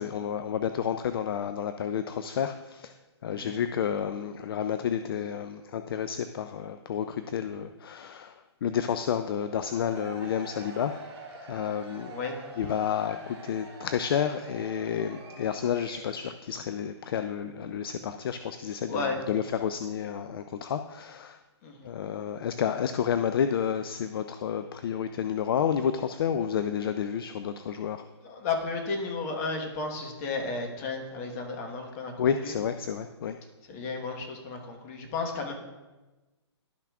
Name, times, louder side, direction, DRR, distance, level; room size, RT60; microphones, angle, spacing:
voice 1, 0.0-2.9 3.2-8.3 8.6-10.9 11.5-12.2 12.6-21.4 21.8-28.0 32.2-33.4, left 8 dB, 55° left, 9 dB, 0.4 m, -30 dB
Cheering / Crowd, 9.6-16.3, right 2 dB, 25° right, 1.9 m, -46 dB
voice 2, 18.9-19.4 21.6-21.9 28.2-32.5 33.7-35.5, left 4 dB, 30° left, 2 dB, 1.3 m, -33 dB
11.5 x 5.8 x 2.4 m, 1.2 s
hypercardioid pair, 150°, 15 cm